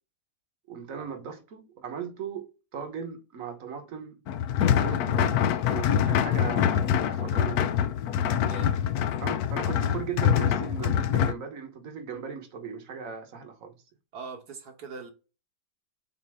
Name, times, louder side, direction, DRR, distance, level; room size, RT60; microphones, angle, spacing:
voice 1, 0.7-4.2 4.7-5.4 5.7-7.8 9.2-13.7, right 6 dB, 60° right, 1.4 m, -38 dB
sound 1, 4.3-11.3, left 9 dB, 75° left, 1.1 m, -25 dB
voice 2, 8.4-8.9 14.1-15.1, right 4 dB, 75° right, 1.9 m, -41 dB
7.6 x 2.6 x 4.9 m
omnidirectional pair, 1.7 m